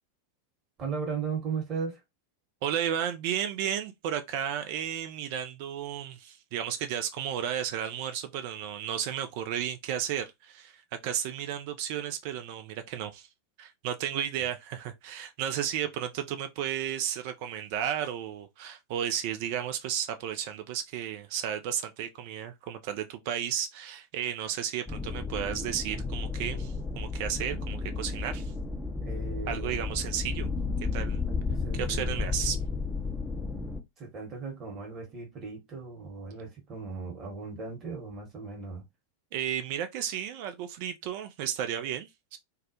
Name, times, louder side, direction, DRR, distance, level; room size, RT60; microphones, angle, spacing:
voice 1, 0.8-2.0 29.0-29.8 31.3-32.3 34.0-38.8, right 5 dB, 30° right, 1.1 m, -37 dB
voice 2, 2.6-13.3 13.6-28.5 29.5-30.5 30.9-31.2 31.8-32.6 39.3-42.4, right 10 dB, 45° right, 0.3 m, -33 dB
sound 1, 24.9-33.8, left 4 dB, 5° left, 0.5 m, -33 dB
2.2 x 2.1 x 2.7 m
figure-of-eight pair, 90°, 0 cm